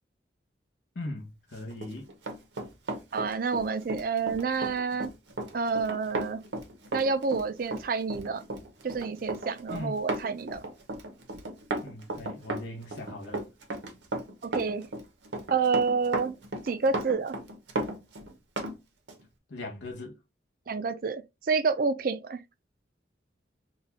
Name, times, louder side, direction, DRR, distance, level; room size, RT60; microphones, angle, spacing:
voice 1, 0.9-2.1 9.7-10.0 11.8-13.4 19.5-20.2, left 2 dB, 80° left, 0.8 m, -39 dB
Run, 1.7-18.8 19.1-19.2, right 2 dB, 80° right, 0.8 m, -35 dB
voice 2, 3.1-5.1 5.5-6.4 6.9-8.4 8.8-10.6 14.4-14.9 15.5-16.3 16.6-17.4 20.7-22.4, right 4 dB, 50° right, 0.4 m, -28 dB
4.0 x 2.3 x 2.8 m
head